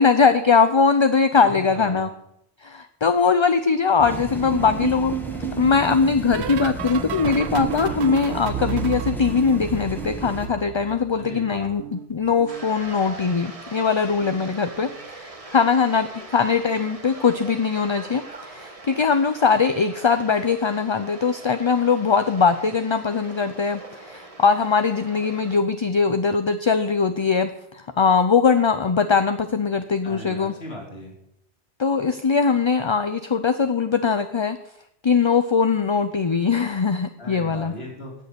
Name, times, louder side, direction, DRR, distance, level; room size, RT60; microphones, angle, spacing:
voice 1, 0.0-2.1 2.6-5.1 5.6-30.5 31.8-34.6 35.0-37.7, left 5 dB, 35° left, 9 dB, 0.6 m, -21 dB
voice 2, 1.4-2.1 11.2-11.7 30.0-31.1 37.2-38.2, left 1 dB, 75° left, -1 dB, 3.6 m, -37 dB
sound 1, 4.0-10.5, right 1 dB, ahead, 1.6 m, -34 dB
sound 2, 4.5-11.3 11.6-13.1 14.1-14.5 14.7-15.1 16.6-16.9 17.2-17.5 19.1-19.2, right 12 dB, 90° right, 0.9 m, -33 dB
sound 3, 12.5-25.6, right 3 dB, 35° right, 1.4 m, -42 dB
17.5 x 6.8 x 6.9 m, 0.76 s
omnidirectional pair, 1.1 m